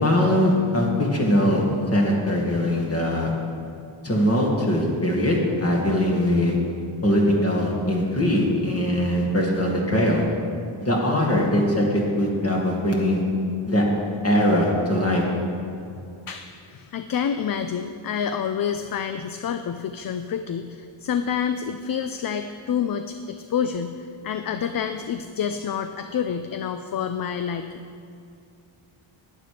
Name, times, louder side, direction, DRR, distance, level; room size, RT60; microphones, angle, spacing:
voice 1, 0.0-1.6 1.9-3.3 4.0-6.5 7.0-10.2 10.8-13.2 13.7-13.8 14.2-15.2, left 1 dB, 30° left, -1 dB, 2.2 m, -21 dB
voice 2, 16.3-27.9, left 7 dB, 45° left, 9 dB, 0.5 m, -28 dB
11.0 x 9.8 x 5.1 m, 2.5 s
wide cardioid pair, 115°, 50 cm